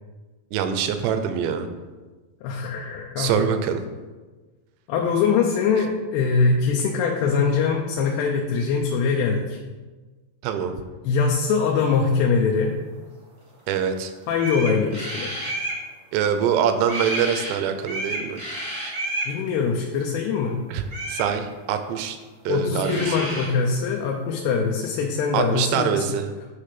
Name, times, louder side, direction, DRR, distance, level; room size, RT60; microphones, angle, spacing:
voice 1, 0.5-1.7 3.2-3.8 10.4-10.7 13.7-14.1 16.1-18.4 20.7-20.8 21.1-22.2 22.5-23.0 25.3-26.2, right 8 dB, 90° right, 8 dB, 2.8 m, -24 dB
voice 2, 2.4-3.5 4.9-9.6 11.0-12.8 14.3-15.3 19.3-20.6 22.5-26.1, left 5 dB, 80° left, 0 dB, 2.7 m, -23 dB
sound 1, 14.0-14.1 14.3-15.8 16.8-17.5 17.8-19.3 20.9-21.3 22.5-22.6 22.8-23.5, right 1 dB, 50° right, 1.1 m, -30 dB
9.6 x 3.3 x 5.8 m, 1.3 s
omnidirectional pair, 4.9 m